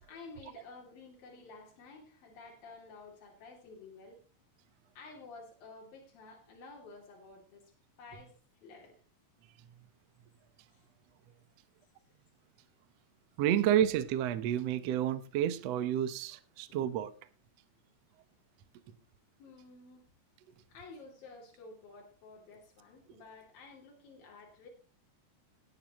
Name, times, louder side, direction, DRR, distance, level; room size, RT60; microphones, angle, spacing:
voice 1, 0.0-4.2 5.0-7.7 8.0-8.3 8.6-9.0 10.7-10.9 11.8-11.9 16.7-16.8 19.4-20.0 20.7-24.7, left 3 dB, 85° left, 4.6 m, -52 dB
voice 2, 13.4-17.1, right 10 dB, 65° right, 1.7 m, -30 dB
17.5 x 11.5 x 3.1 m
omnidirectional pair, 4.0 m